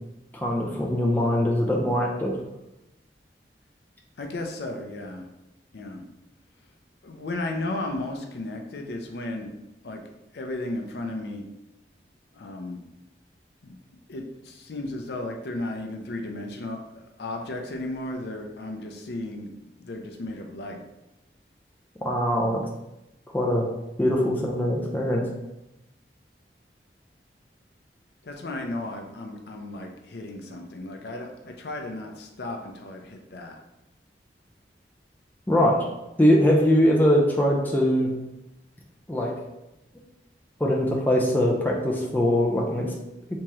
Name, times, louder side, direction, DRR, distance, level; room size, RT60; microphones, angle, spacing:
voice 1, 0.3-2.3 22.0-22.6 23.3-23.7 24.0-25.2 35.5-35.9 36.2-38.1 39.1-39.3 40.6-42.9, equal, 10° left, -2 dB, 0.4 m, -22 dB
voice 2, 4.2-5.3 5.7-6.0 7.0-9.5 9.8-10.0 10.3-11.4 12.3-12.8 13.6-13.8 14.1-19.5 19.8-20.8 28.2-33.6, left 2 dB, 75° left, 3 dB, 0.5 m, -34 dB
3.5 x 2.8 x 3.0 m, 0.91 s
head